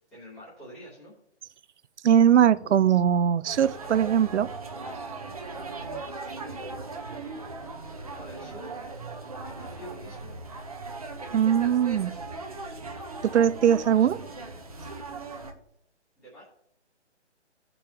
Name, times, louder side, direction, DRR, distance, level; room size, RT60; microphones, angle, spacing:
voice 1, 0.1-1.1 2.6-2.7 6.1-7.5 8.2-9.1 9.4-10.4 13.9-14.1 16.2-16.4, equal, ahead, 1.0 m, -47 dB
voice 2, 2.0-4.5 11.3-12.2 13.2-14.2, right 9 dB, 75° right, 0.5 m, -21 dB
sound 1, 3.5-15.5, right 3 dB, 30° right, 0.7 m, -39 dB
15.5 x 5.3 x 2.9 m
hypercardioid pair, 175°, 35 cm